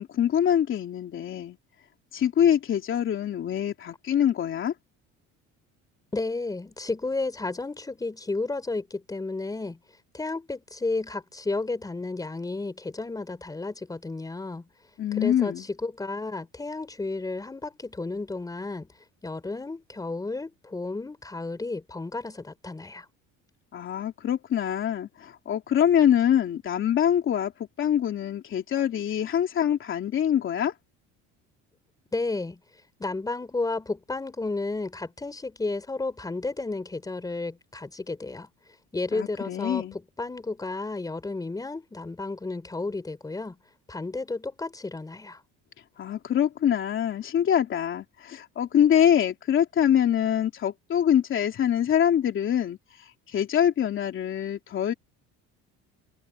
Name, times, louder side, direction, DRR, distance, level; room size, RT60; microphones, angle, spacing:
voice 1, 0.0-1.6 2.1-4.7 15.0-15.6 23.7-27.5 27.8-30.7 39.1-40.0 46.0-54.9, left 9 dB, 40° left, 3.0 m, -24 dB
voice 2, 6.1-9.8 10.1-14.6 15.1-18.9 19.2-23.1 32.1-32.6 33.0-38.5 38.9-43.6 43.9-45.4, left 3 dB, 10° left, 4.2 m, -32 dB
cardioid pair, 135°, 31 cm